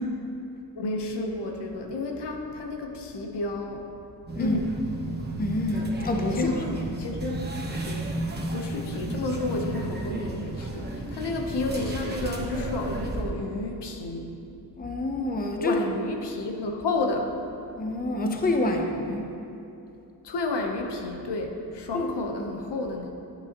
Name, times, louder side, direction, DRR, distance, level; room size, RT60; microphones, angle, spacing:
voice 1, 0.8-3.8 4.4-4.7 6.3-8.2 8.5-14.4 15.6-17.3 20.2-23.2, left 2 dB, 80° left, 3 dB, 1.0 m, -31 dB
sound 1, 4.3-13.2, right 2 dB, 25° right, 1.0 m, -33 dB
voice 2, 5.4-6.5 14.8-15.8 17.7-19.3 21.9-22.1, left 2 dB, 20° left, 3 dB, 0.7 m, -27 dB
10.0 x 8.7 x 3.0 m, 2.8 s
wide cardioid pair, 105°, 41 cm